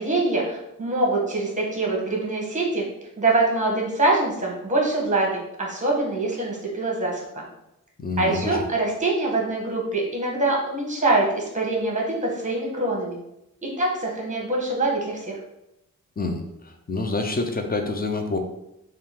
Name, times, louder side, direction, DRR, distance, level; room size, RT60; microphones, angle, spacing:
voice 1, 0.0-2.8 3.2-7.4 8.2-13.2 13.8-15.4, right 2 dB, 20° right, -2 dB, 1.2 m, -24 dB
voice 2, 8.0-8.6 16.2-18.4, left 3 dB, 30° left, 5 dB, 0.5 m, -27 dB
3.5 x 2.4 x 4.4 m, 0.85 s
wide cardioid pair, 110°, 33 cm